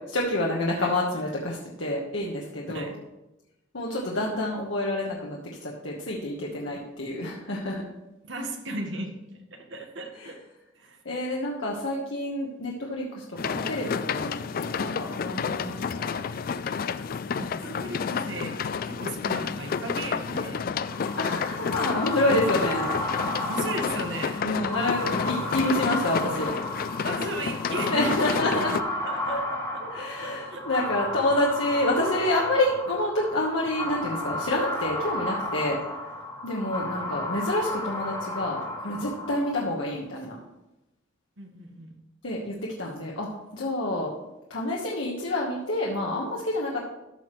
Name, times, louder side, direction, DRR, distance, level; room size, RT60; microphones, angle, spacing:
voice 1, 0.1-2.9 3.7-7.8 10.2-10.3 11.0-16.2 20.3-20.4 21.2-22.9 24.4-26.5 27.9-28.7 29.3-29.4 29.8-35.8 36.4-40.4 42.2-44.1 44.5-46.8, left 1 dB, 80° left, -3 dB, 1.2 m, -28 dB
voice 2, 8.2-9.1 9.5-10.4 10.8-11.0 17.3-18.6 18.8-20.8 23.5-24.4 27.0-28.8 29.0-29.4 30.0-30.7 41.4-41.9, right 2 dB, 75° right, 3 dB, 1.4 m, -36 dB
sound 1, 13.4-28.8, left 6 dB, 50° left, 0.3 m, -30 dB
sound 2, 20.8-39.7, left 1 dB, 20° left, 1.9 m, -33 dB
13.5 x 5.9 x 3.1 m, 0.96 s
head